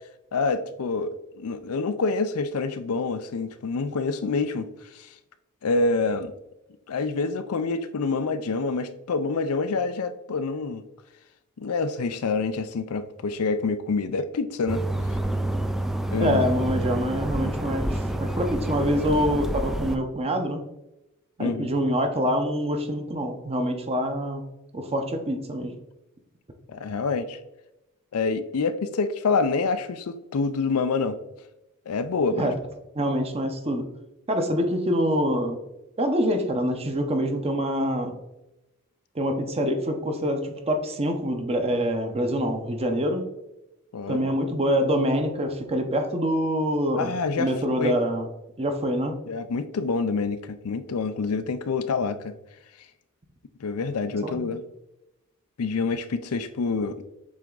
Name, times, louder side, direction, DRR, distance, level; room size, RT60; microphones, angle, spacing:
voice 1, 0.3-4.7 4.9-5.1 5.6-6.3 6.9-10.8 11.6-14.8 16.1-16.4 21.4-21.7 26.7-27.4 28.1-31.2 31.9-32.5 43.9-44.3 47.0-47.5 47.8-48.0 49.3-52.4 53.6-54.6 55.6-57.0, left 4 dB, 80° left, 11 dB, 0.5 m, -27 dB
sound 1, 14.7-20.0, right 1 dB, ahead, 0.3 m, -28 dB
voice 2, 16.2-20.6 21.4-24.4 24.7-25.7 32.4-32.5 32.9-33.8 34.3-35.6 36.0-38.1 39.1-43.3 44.1-48.3 48.6-49.1 54.2-54.5, equal, 30° right, 5 dB, 0.8 m, -25 dB
7.4 x 3.5 x 3.9 m, 0.94 s
head